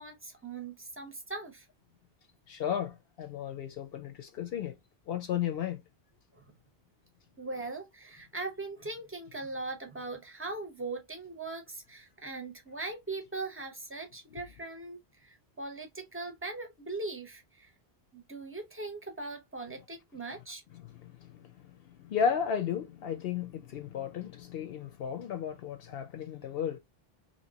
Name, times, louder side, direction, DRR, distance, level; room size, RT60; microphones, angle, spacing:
voice 1, 0.0-1.7 6.4-6.5 7.4-17.7 18.1-20.6, right 3 dB, 15° right, 0.7 m, -40 dB
voice 2, 2.5-4.7 5.1-5.8 14.3-14.4 20.7-26.8, left 8 dB, 70° left, 0.8 m, -34 dB
2.9 x 2.8 x 2.7 m
omnidirectional pair, 1.0 m